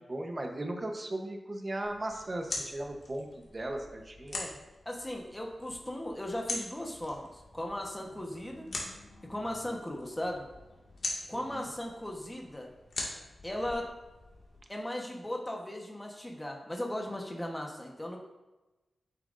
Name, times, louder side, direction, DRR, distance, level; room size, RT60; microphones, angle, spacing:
voice 1, 0.0-3.3 3.5-4.4 11.3-11.6, right 1 dB, 30° right, 3 dB, 1.0 m, -37 dB
sound 1, 1.8-14.6, left 2 dB, 65° left, 2.0 m, -43 dB
voice 2, 4.8-8.7 9.3-10.4 11.3-12.7 13.4-13.9 14.7-18.2, left 1 dB, 10° left, 0 dB, 1.2 m, -37 dB
9.2 x 8.4 x 2.6 m, 1.1 s
wide cardioid pair, 145°, 0 cm